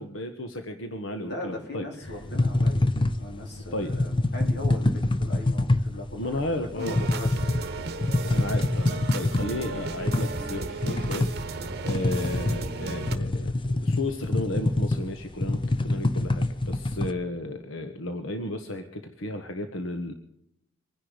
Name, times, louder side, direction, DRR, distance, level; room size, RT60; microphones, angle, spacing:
voice 1, 0.0-2.1 3.7-3.9 6.2-7.0 8.3-13.5 13.8-20.1, left 1 dB, 90° left, 7 dB, 1.3 m, -33 dB
voice 2, 1.2-2.9 3.2-7.6 11.6-11.7, left 1 dB, 55° left, 1 dB, 4.2 m, -39 dB
sound 1, 2.1-17.1, left 2 dB, 25° left, 0.7 m, -26 dB
sound 2, 6.8-13.2, right 3 dB, 55° right, 1.0 m, -34 dB
24.5 x 10.5 x 5.1 m, 0.78 s
head